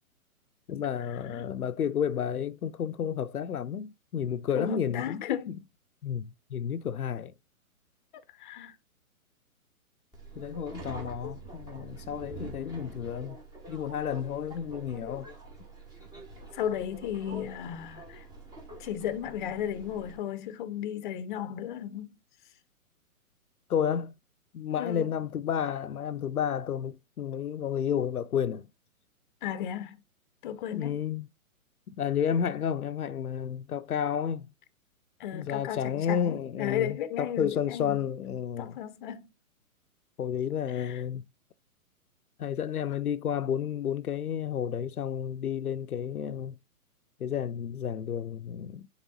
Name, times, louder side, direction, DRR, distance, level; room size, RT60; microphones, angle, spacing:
voice 1, 0.7-5.6 6.0-7.3 10.4-13.4 13.7-15.3 23.7-24.1 24.5-28.7 30.7-31.3 32.0-34.5 35.3-38.8 40.2-41.2 42.4-46.5 47.2-48.9, left 8 dB, 80° left, 0.7 m, -31 dB
voice 2, 4.6-5.5 8.4-8.7 16.5-18.2 18.8-22.2 24.8-25.1 29.4-30.0 30.4-31.0 35.2-38.0 38.6-39.3 40.7-41.0, left 10 dB, 35° left, 0.8 m, -34 dB
Subway metro underground, 10.1-20.2, right 2 dB, 10° right, 1.1 m, -45 dB
7.3 x 3.3 x 3.9 m
hypercardioid pair, 135°, 43 cm